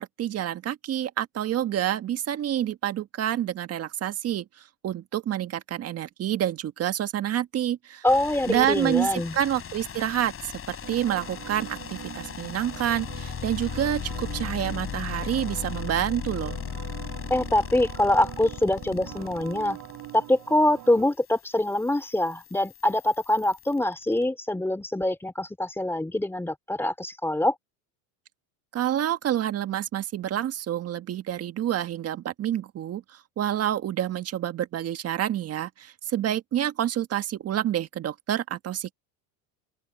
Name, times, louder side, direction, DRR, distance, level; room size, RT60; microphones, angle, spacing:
voice 1, 0.0-8.0 8.5-16.6 28.7-38.9, right 11 dB, 35° right, 1.6 m, -28 dB
voice 2, 8.0-9.3 17.3-19.8 20.1-27.5, left 1 dB, 5° left, 2.6 m, -24 dB
sound 1, 8.1-24.2, left 8 dB, 30° left, 8.0 m, -38 dB
sound 2, 10.8-21.1, right 16 dB, 50° right, 6.1 m, -43 dB
open air
supercardioid pair, 115°, 42 cm